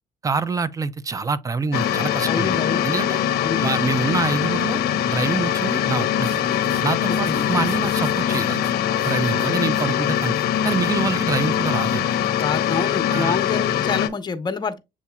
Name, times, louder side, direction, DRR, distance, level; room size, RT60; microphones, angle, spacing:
voice 1, 0.2-2.6 2.8-3.2 3.6-6.3 6.8-8.7 9.0-10.4 10.6-12.1 13.1-13.4, right 4 dB, 20° right, 0.4 m, -26 dB
sound 1, 1.7-14.1, left 10 dB, 65° left, 0.6 m, -22 dB
voice 2, 2.3-2.8 3.4-3.6 7.1-7.5 9.5-9.6 12.4-14.8, left 5 dB, 25° left, 0.7 m, -27 dB
sound 2, 6.2-12.3, right 2 dB, 70° right, 1.3 m, -44 dB
7.2 x 2.8 x 2.2 m
cardioid pair, 110°, 17 cm